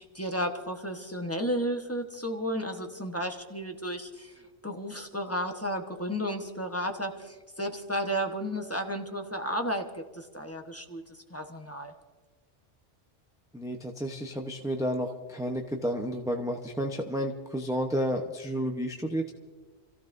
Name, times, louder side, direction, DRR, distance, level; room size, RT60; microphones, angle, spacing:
voice 1, 0.0-11.9, equal, 10° left, 4 dB, 1.1 m, -33 dB
voice 2, 13.5-19.3, equal, 5° right, 1 dB, 0.7 m, -31 dB
30.0 x 15.0 x 2.6 m, 1.4 s
omnidirectional pair, 1.3 m